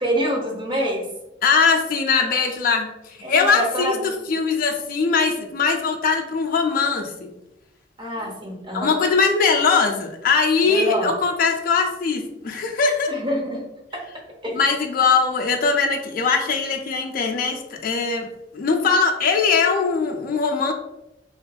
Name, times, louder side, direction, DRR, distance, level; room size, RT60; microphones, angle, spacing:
voice 1, 0.0-1.1 3.2-4.0 8.0-9.0 10.6-11.2 13.1-13.7 14.4-14.5, equal, 25° right, -1 dB, 0.7 m, -26 dB
voice 2, 1.4-4.0 4.3-7.3 8.7-13.1 14.5-20.7, left 5 dB, 50° left, 3 dB, 0.4 m, -21 dB
2.8 x 2.5 x 2.3 m, 0.90 s
head